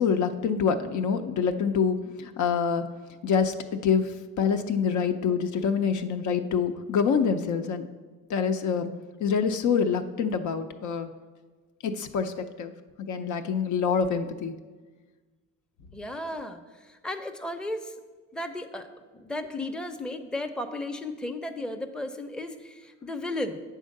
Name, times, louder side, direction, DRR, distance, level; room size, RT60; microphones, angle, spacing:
voice 1, 0.0-2.8 3.2-7.9 8.3-8.9 9.2-11.1 11.8-12.7 13.0-14.5, left 6 dB, 75° left, 7 dB, 0.6 m, -26 dB
voice 2, 15.9-18.0 18.3-18.9 19.1-23.6, left 1 dB, 5° left, 5 dB, 0.5 m, -34 dB
8.5 x 3.7 x 6.5 m, 1.3 s
cardioid pair, 90°, 30 cm